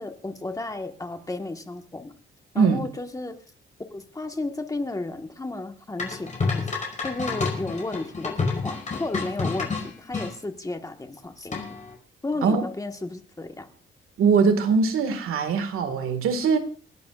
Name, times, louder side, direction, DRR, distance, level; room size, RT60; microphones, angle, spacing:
voice 1, 0.0-2.1 2.5-3.3 3.9-6.7 7.0-8.4 8.6-11.8 12.2-13.7, left 2 dB, 15° left, 5 dB, 1.5 m, -33 dB
voice 2, 2.6-2.9 12.4-12.6 14.2-16.6, right 5 dB, 85° right, 9 dB, 2.0 m, -21 dB
sound 1, 6.0-10.3 11.5-11.9, left 4 dB, 35° left, 5.4 m, -29 dB
28.5 x 11.5 x 2.5 m, 0.42 s
cardioid pair, 130°, 21 cm